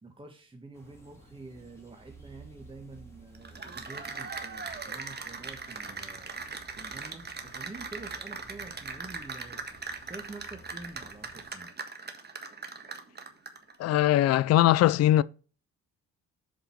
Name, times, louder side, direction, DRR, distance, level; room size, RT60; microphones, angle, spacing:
voice 1, 0.0-6.3 6.8-9.6 10.0-11.7, right 2 dB, 15° right, 1.4 m, -47 dB
sound 1, 0.7-11.5, right 2 dB, 10° left, 3.4 m, -54 dB
Cheering / Applause, 3.3-13.7, right 4 dB, 35° right, 1.6 m, -40 dB
voice 2, 13.8-15.2, left 14 dB, 55° left, 0.4 m, -21 dB
7.2 x 5.2 x 5.8 m
cardioid pair, 90°, 30 cm